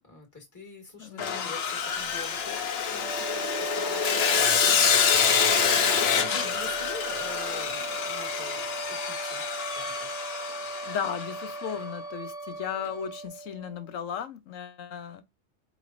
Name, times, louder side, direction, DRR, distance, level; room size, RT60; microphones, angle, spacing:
voice 1, 0.0-8.6 8.9-9.4 9.7-10.1, left 3 dB, 15° left, 1.5 m, -45 dB
voice 2, 1.0-1.5 6.3-6.5 10.9-15.2, left 8 dB, 85° left, 1.2 m, -36 dB
Sawing, 1.2-11.4, left 7 dB, 60° left, 0.9 m, -26 dB
sound 1, 3.0-13.9, right 3 dB, 40° right, 1.1 m, -38 dB
Wind instrument woodwind instrument, 9.6-13.2, equal, 5° right, 0.8 m, -44 dB
4.8 x 3.1 x 2.5 m
omnidirectional pair, 1.3 m